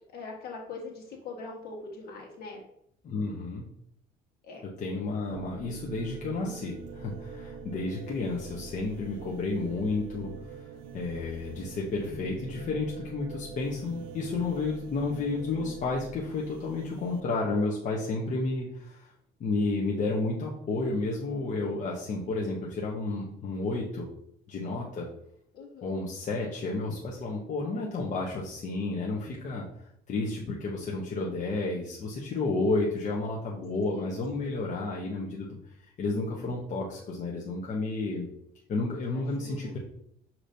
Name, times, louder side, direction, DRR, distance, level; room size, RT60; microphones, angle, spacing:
voice 1, 0.1-2.6 4.4-4.6 25.5-25.9 33.9-34.6 39.1-39.7, left 3 dB, 65° left, 0 dB, 1.5 m, -42 dB
voice 2, 3.0-3.6 4.8-10.6 10.9-19.1 19.4-24.1 24.5-25.1 25.8-29.6 30.1-35.6 36.0-38.3 38.7-39.8, left 3 dB, 45° left, -3 dB, 0.8 m, -31 dB
sound 1, 5.2-17.2, right 4 dB, 90° right, 0.4 m, -45 dB
6.5 x 2.9 x 2.7 m, 0.72 s
cardioid pair, 110°, 17 cm